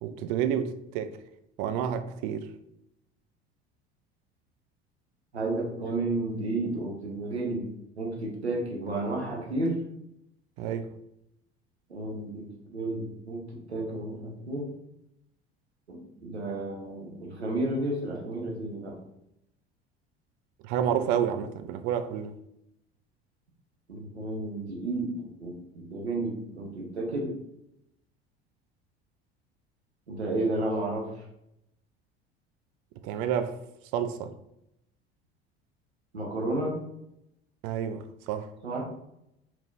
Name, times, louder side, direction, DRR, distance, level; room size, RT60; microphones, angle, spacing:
voice 1, 0.0-1.2 1.6-2.5 10.6-10.9 20.6-22.3 33.0-33.5 33.9-34.3 37.6-38.5, right 9 dB, 50° right, 0.5 m, -29 dB
voice 2, 5.3-7.7 8.0-9.8 11.9-12.5 12.7-13.4 13.7-14.7 15.9-19.0 23.9-27.4 30.1-31.1 36.1-36.8 38.6-38.9, right 2 dB, 85° right, 0.9 m, -32 dB
5.0 x 2.9 x 2.6 m
figure-of-eight pair, 65°, 32 cm